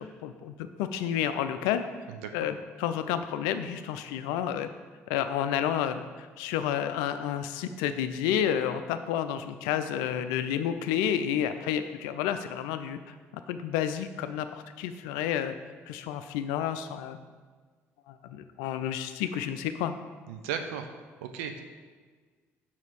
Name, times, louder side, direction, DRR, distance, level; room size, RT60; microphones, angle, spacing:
voice 1, 0.2-0.5 0.8-1.8 2.3-4.7 5.1-13.0 13.5-15.6 15.9-17.2 18.1-19.9, left 9 dB, 75° left, 10 dB, 0.4 m, -30 dB
voice 2, 20.3-20.9 21.2-21.6, right 7 dB, 75° right, 6 dB, 0.5 m, -35 dB
5.8 x 4.0 x 4.7 m, 1.5 s
hypercardioid pair, 50°, 7 cm